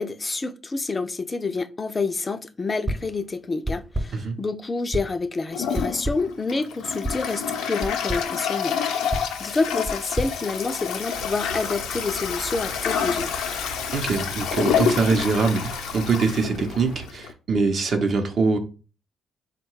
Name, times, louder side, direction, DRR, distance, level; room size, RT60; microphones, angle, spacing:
voice 1, 0.0-8.8 9.4-13.3, left 3 dB, 25° left, 0.3 m, -28 dB
sound 1, 2.9-3.2 3.7-4.3 4.9-5.3 5.7-6.4 7.0-7.3 7.8-8.3 9.1-11.2, right 1 dB, 20° right, 0.7 m, -31 dB
Toilet flush, 5.5-17.3, left 7 dB, 90° left, 0.5 m, -28 dB
sound 2, 11.1-17.1, right 3 dB, 80° right, 0.9 m, -40 dB
voice 2, 13.9-18.6, right 4 dB, 55° right, 0.7 m, -23 dB
3.8 x 2.2 x 4.5 m
cardioid pair, 90°, 0 cm